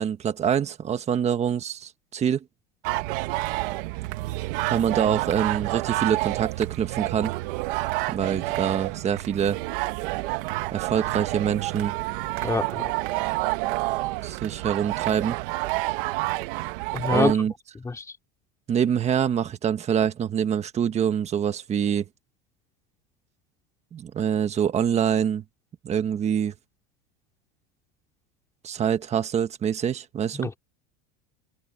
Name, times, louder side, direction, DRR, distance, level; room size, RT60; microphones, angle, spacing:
voice 1, 0.0-2.4 4.7-7.3 8.1-9.6 10.7-11.9 14.2-15.4 17.1-17.5 18.7-22.1 23.9-25.4 25.8-26.5 28.6-30.5, right 8 dB, 20° right, 1.4 m, -25 dB
sound 1, 2.8-17.3, right 20 dB, 65° right, 1.5 m, -29 dB
voice 2, 12.4-12.9 16.9-17.3 17.8-18.0 30.3-30.6, left 3 dB, 10° left, 2.8 m, -26 dB
supercardioid pair, 160°, 30 cm